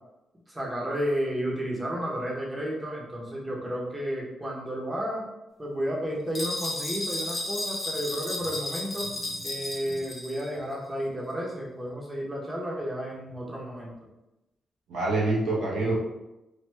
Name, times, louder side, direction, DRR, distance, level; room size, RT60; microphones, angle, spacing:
voice 1, 0.5-5.2 5.6-9.1 9.4-13.9, equal, 15° right, -3 dB, 0.9 m, -32 dB
sound 1, 6.3-10.5, left 2 dB, 35° left, 1.0 m, -33 dB
voice 2, 9.1-9.4 9.8-10.0 14.9-15.9, right 2 dB, 80° right, -4 dB, 0.9 m, -27 dB
3.3 x 2.3 x 3.2 m, 0.94 s
cardioid pair, 105°, 0 cm